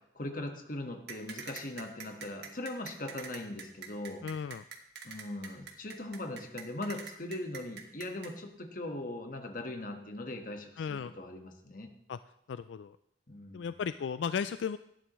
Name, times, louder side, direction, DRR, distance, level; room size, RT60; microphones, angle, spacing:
voice 1, 0.1-4.2 5.0-11.9 13.3-13.7, left 1 dB, 50° left, 4 dB, 1.5 m, -40 dB
sound 1, 1.1-8.3, right 6 dB, 60° right, 1.7 m, -44 dB
voice 2, 4.2-4.6 10.8-11.1 12.1-12.2 12.5-13.0 13.5-14.8, left 6 dB, 80° left, 13 dB, 0.3 m, -35 dB
18.0 x 12.5 x 3.1 m, 0.75 s
head